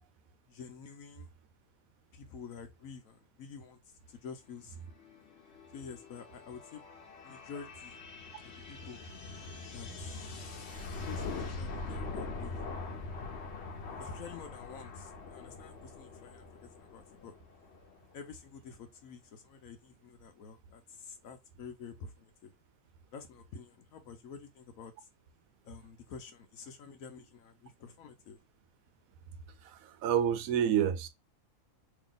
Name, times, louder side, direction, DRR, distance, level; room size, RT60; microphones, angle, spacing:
voice 1, 0.5-1.3 2.1-3.8 4.1-4.8 5.7-6.8 7.2-7.9 8.7-9.0 9.7-10.1 11.0-12.5 14.0-16.4 16.8-17.3 18.1-22.5 23.1-24.9 25.6-28.4, left 6 dB, 75° left, 1.1 m, -48 dB
sound 1, 4.7-18.2, left 3 dB, 55° left, 1.0 m, -43 dB
voice 2, 29.6-31.1, right 9 dB, 80° right, 1.0 m, -29 dB
2.9 x 2.7 x 3.8 m
omnidirectional pair, 1.5 m